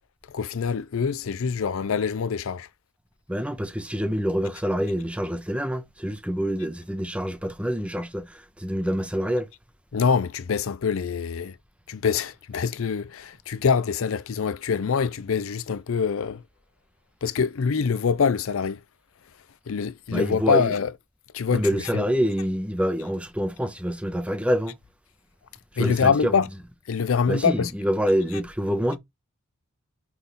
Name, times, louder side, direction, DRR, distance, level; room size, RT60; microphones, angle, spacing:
voice 1, 0.3-2.7 9.9-11.6 11.9-16.4 17.2-18.8 19.7-20.9 21.3-21.7 21.9-22.0 25.8-26.5 26.9-27.7, left 6 dB, 65° left, 0.4 m, -24 dB
voice 2, 3.3-9.5 20.1-20.7 21.5-24.8 25.7-26.3 27.3-29.0, equal, 5° right, 0.9 m, -26 dB
5.7 x 4.1 x 5.6 m
head